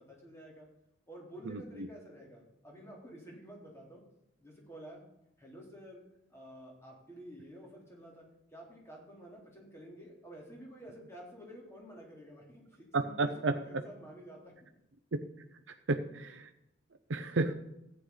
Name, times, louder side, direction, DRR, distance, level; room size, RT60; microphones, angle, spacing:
voice 1, 0.1-0.7 1.1-4.0 4.4-5.0 5.4-6.0 6.3-8.2 8.5-14.5, right 1 dB, 15° left, -2 dB, 3.4 m, -51 dB
voice 2, 12.9-13.5 15.9-16.5 17.1-17.5, right 3 dB, 85° right, 6 dB, 0.8 m, -31 dB
14.5 x 9.6 x 4.0 m, 0.84 s
head